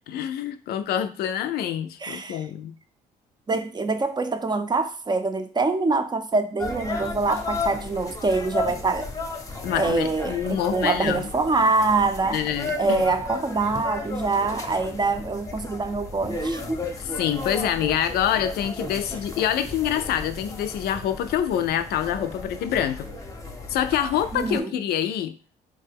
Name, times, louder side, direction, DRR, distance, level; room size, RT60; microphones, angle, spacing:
voice 1, 0.1-2.7 9.6-11.3 12.3-13.0 17.0-23.1 23.7-25.3, left 10 dB, 70° left, 0.4 m, -26 dB
voice 2, 2.0-2.5 3.5-9.1 9.7-12.4 12.8-16.6 24.3-24.7, right 3 dB, 25° right, 0.5 m, -25 dB
sound 1, 6.6-24.6, left 3 dB, 20° left, 0.8 m, -34 dB
3.7 x 2.2 x 3.4 m
supercardioid pair, 65°, 17 cm